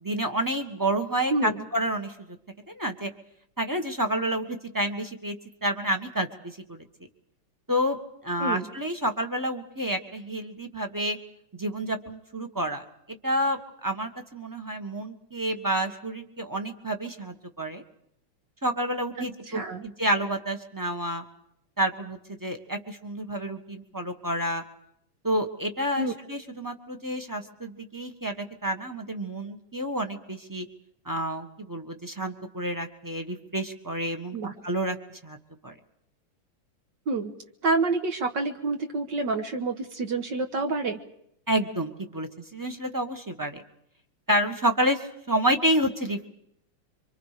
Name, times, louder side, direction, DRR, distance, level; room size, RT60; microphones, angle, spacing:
voice 1, 0.0-2.1 2.7-3.1 3.6-5.4 5.6-6.8 7.7-8.0 8.2-11.2 11.5-17.8 18.6-21.2 21.8-24.6 25.2-30.7 31.0-34.4 34.6-35.4 35.6-35.7 41.5-43.6 44.3-46.3, right 1 dB, 10° right, 5 dB, 1.2 m, -29 dB
voice 2, 1.3-1.6 8.4-8.7 19.2-19.8 26.0-26.1 34.3-34.5 37.1-37.3 37.6-41.0, right 3 dB, 55° right, 4 dB, 1.8 m, -28 dB
27.5 x 25.0 x 5.1 m, 0.75 s
omnidirectional pair, 2.4 m